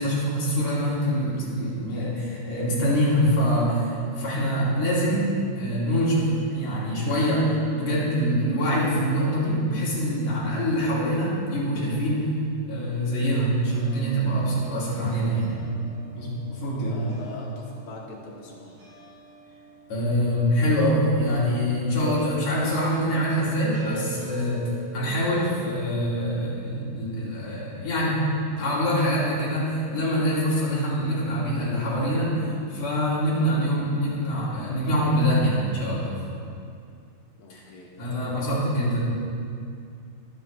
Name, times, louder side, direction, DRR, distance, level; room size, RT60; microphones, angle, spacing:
voice 1, 0.0-12.3 12.6-15.5 16.1-17.0 19.9-32.4 32.7-36.2 37.5-37.6 38.0-39.0, equal, 45° left, -8 dB, 4.0 m, -24 dB
sound 1, 12.3-25.9, right 5 dB, 50° right, 4.1 m, -47 dB
voice 2, 16.9-18.8 37.4-38.4, left 3 dB, 70° left, -3 dB, 3.4 m, -43 dB
22.0 x 8.1 x 3.5 m, 2.4 s
omnidirectional pair, 4.5 m